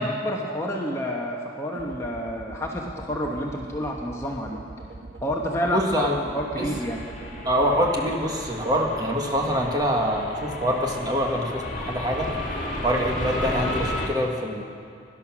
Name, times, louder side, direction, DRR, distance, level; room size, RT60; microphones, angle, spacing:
voice 1, 0.0-4.6 5.2-7.0, equal, 15° left, -1 dB, 1.1 m, -29 dB
sound 1, 1.7-9.9, right 2 dB, 85° right, 1.3 m, -42 dB
voice 2, 5.6-6.2 6.6-6.7 7.4-12.3 12.8-14.6, equal, 20° right, 0 dB, 1.7 m, -25 dB
sound 2, 6.6-14.1, left 1 dB, 45° left, 2.0 m, -33 dB
17.5 x 11.0 x 6.1 m, 2.3 s
head